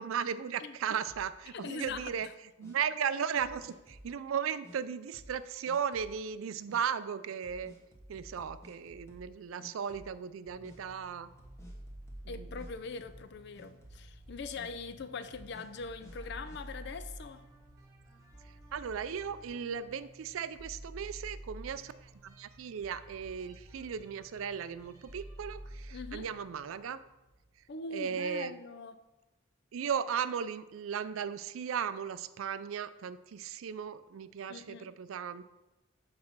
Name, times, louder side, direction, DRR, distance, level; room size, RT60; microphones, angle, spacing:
voice 1, 0.0-2.3 2.6-7.7 8.1-11.3 12.2-12.5 18.7-27.0 27.9-28.5 29.7-35.4, right 7 dB, 80° right, 0.4 m, -36 dB
voice 2, 0.6-1.0 1.5-2.3 12.3-17.4 25.9-26.3 27.7-28.9 34.5-34.9, left 4 dB, 55° left, 0.4 m, -42 dB
sound 1, 1.1-2.2 2.6-2.8 3.4-4.1 4.6-4.8 5.1-5.4 5.7-6.2 6.7-6.8 7.4-9.3 9.6-10.3 10.6-10.8 11.4-12.7 13.0-13.3 13.6-14.1 14.6-14.7 15.3-16.6, equal, 15° left, 1.2 m, -54 dB
sound 2, 10.5-27.8, right 1 dB, 15° right, 1.4 m, -50 dB
6.5 x 4.2 x 5.8 m
head